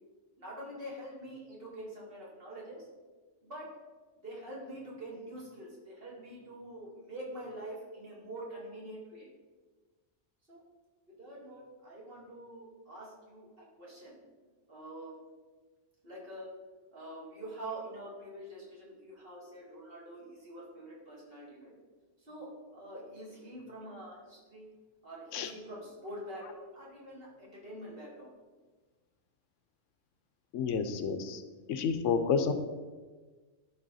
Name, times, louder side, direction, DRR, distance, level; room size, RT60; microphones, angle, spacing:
voice 1, 0.4-2.8 3.4-3.7 4.2-9.3 10.5-10.6 11.2-13.5 13.8-14.2 14.7-15.1 16.0-16.5 16.9-21.7 22.3-24.7 25.0-28.3, right 1 dB, 50° right, -5 dB, 2.3 m, -45 dB
voice 2, 30.5-31.4 31.7-32.5, left 6 dB, 85° left, 9 dB, 1.0 m, -30 dB
11.0 x 4.0 x 4.0 m, 1.3 s
omnidirectional pair, 1.3 m